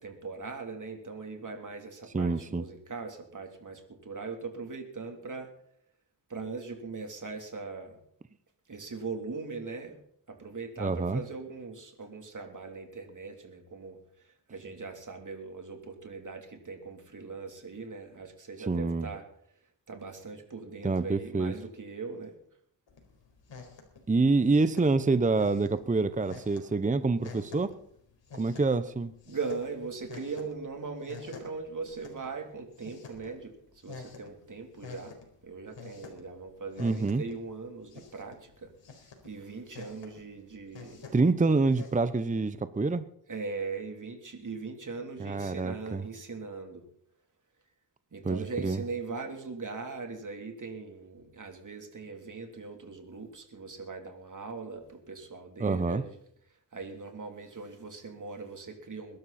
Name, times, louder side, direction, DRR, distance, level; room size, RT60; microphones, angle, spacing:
voice 1, 0.0-5.5 6.3-8.0 8.7-10.0 10.3-14.0 14.5-19.2 19.9-22.4 29.3-33.5 33.8-35.2 35.4-38.7 39.2-41.1 43.3-46.8 48.1-56.2 56.7-59.2, right 4 dB, 40° right, 4 dB, 3.4 m, -40 dB
voice 2, 2.1-2.6 10.8-11.2 18.6-19.1 20.8-21.5 24.1-27.7 28.4-29.1 36.8-37.2 41.1-43.1 45.2-46.0 48.2-48.8 55.6-56.0, right 3 dB, 15° right, 13 dB, 0.8 m, -27 dB
sound 1, 22.9-42.0, left 4 dB, 70° left, 4.4 m, -50 dB
21.5 x 12.0 x 4.3 m, 0.65 s
cardioid pair, 75°, 45 cm